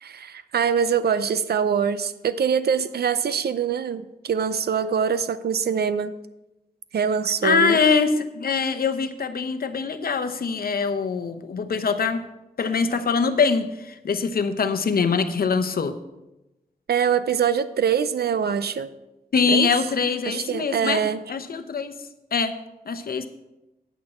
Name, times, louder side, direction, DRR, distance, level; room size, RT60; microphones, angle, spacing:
voice 1, 0.0-6.2 6.9-7.8 16.9-18.9 19.5-19.7 20.3-21.2, right 7 dB, 80° right, 13 dB, 0.6 m, -24 dB
voice 2, 7.4-12.2 12.6-16.0 19.3-21.0 21.3-21.9 22.3-22.5 22.9-23.3, left 5 dB, 65° left, 9 dB, 0.8 m, -23 dB
9.1 x 8.5 x 4.3 m, 0.97 s
wide cardioid pair, 110°, 16 cm